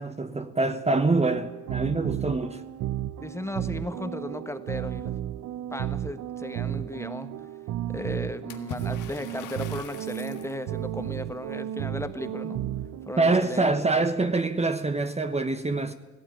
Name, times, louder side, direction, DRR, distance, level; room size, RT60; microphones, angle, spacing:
voice 1, 0.0-2.6 13.2-15.9, right 3 dB, 20° right, 1.1 m, -25 dB
sound 1, 0.9-13.4, right 12 dB, 75° right, 0.7 m, -34 dB
voice 2, 3.2-5.1 5.7-7.3 7.9-12.6 13.1-13.7, left 1 dB, 10° left, 1.4 m, -36 dB
Water / Splash splatter, 8.5-10.6, left 7 dB, 85° left, 1.7 m, -42 dB
17.0 x 17.0 x 9.1 m
cardioid pair, 90°, 30 cm